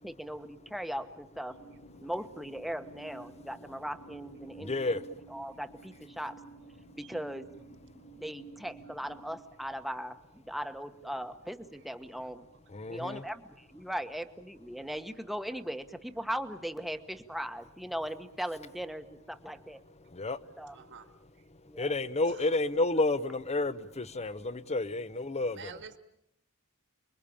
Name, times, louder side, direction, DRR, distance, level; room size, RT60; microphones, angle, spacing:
voice 1, 0.0-1.6 2.0-6.4 7.0-7.5 8.2-12.5 12.9-19.8 20.6-20.8 21.7-22.0, equal, ahead, 8 dB, 1.3 m, -39 dB
sound 1, 1.5-9.3, right 3 dB, 70° left, 5.6 m, -52 dB
voice 2, 4.6-5.0 12.7-13.2 20.1-20.4 21.8-25.7, left 2 dB, 30° left, 15 dB, 1.0 m, -30 dB
voice 3, 20.7-21.1 22.2-22.5 25.5-26.0, right 5 dB, 55° right, 9 dB, 2.0 m, -46 dB
29.5 x 22.0 x 8.7 m, 0.79 s
head